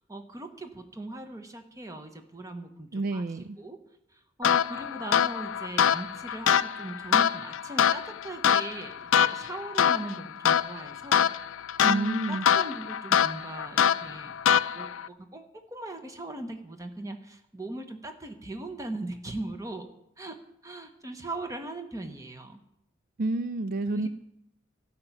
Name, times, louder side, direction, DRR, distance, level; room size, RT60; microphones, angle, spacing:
voice 1, 0.0-3.2 3.6-3.8 4.1-11.2 11.8-14.3 14.6-19.9 20.2-20.4 20.6-22.6 23.9-24.1, right 2 dB, 15° right, 7 dB, 1.1 m, -39 dB
voice 2, 2.9-3.6 11.8-12.5 23.2-24.1, right 2 dB, 45° right, 10 dB, 0.4 m, -29 dB
sound 1, 4.4-15.1, left 8 dB, 85° left, 0.4 m, -25 dB
12.5 x 5.9 x 9.1 m, 0.81 s
head